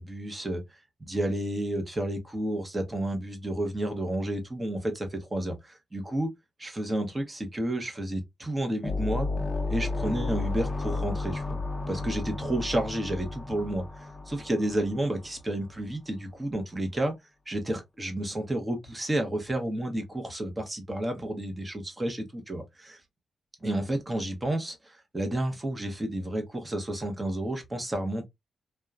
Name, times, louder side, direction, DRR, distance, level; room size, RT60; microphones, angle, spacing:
voice 1, 0.0-6.3 6.6-9.3 9.7-11.6 11.9-17.1 17.5-23.0 23.6-28.3, right 1 dB, 20° right, 0.8 m, -31 dB
sound 1, 8.8-15.3, left 3 dB, 20° left, 0.6 m, -32 dB
2.9 x 2.2 x 2.3 m
cardioid pair, 115°, 0 cm